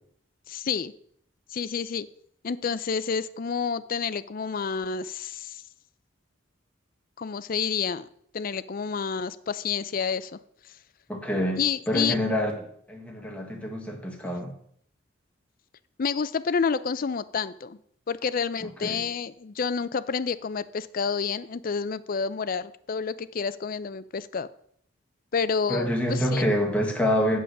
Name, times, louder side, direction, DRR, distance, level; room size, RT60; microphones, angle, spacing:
voice 1, 0.5-0.9 1.5-2.1 2.4-5.6 7.2-8.1 8.3-10.4 11.6-12.2 16.0-17.8 18.1-24.5 25.3-26.5, left 6 dB, 45° left, 14 dB, 0.4 m, -29 dB
voice 2, 11.1-11.6 11.9-14.5 18.6-19.0 25.7-27.4, equal, 5° left, 1 dB, 1.6 m, -27 dB
8.7 x 5.5 x 6.4 m, 0.66 s
head